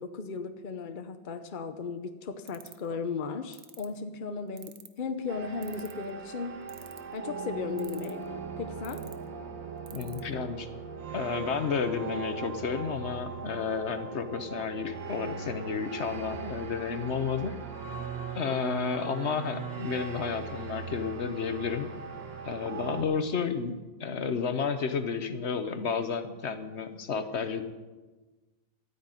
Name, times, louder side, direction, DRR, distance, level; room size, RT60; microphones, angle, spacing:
voice 1, 0.0-6.7 7.1-8.2 8.6-9.1, left 5 dB, 70° left, 8 dB, 0.4 m, -36 dB
sound 1, 2.5-2.9 3.5-3.9 4.6-5.0 5.6-6.1 6.7-7.2 7.8-8.3 8.8-9.1 9.9-10.2, right 11 dB, 90° right, 1.7 m, -47 dB
sound 2, 5.3-23.0, right 5 dB, 70° right, 2.0 m, -39 dB
voice 2, 9.9-10.7 11.1-17.5 18.3-21.9 22.4-27.6, left 6 dB, 50° left, 9 dB, 0.9 m, -31 dB
13.0 x 9.3 x 9.0 m, 1.2 s
omnidirectional pair, 2.1 m